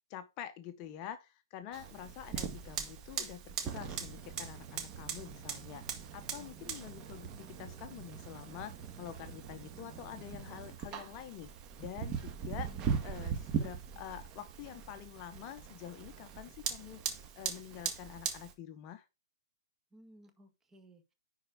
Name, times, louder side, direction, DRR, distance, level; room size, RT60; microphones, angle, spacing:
voice 1, 0.1-5.8 6.1-11.5 11.8-12.7 13.0-17.0 17.4-19.0, left 10 dB, 35° left, 0.8 m, -47 dB
Fire, 1.7-18.5, right 7 dB, 30° right, 1.7 m, -40 dB
voice 2, 12.4-12.9 19.9-21.1, right 1 dB, 10° right, 1.8 m, -58 dB
10.5 x 4.4 x 4.9 m
hypercardioid pair, 135°, 2 cm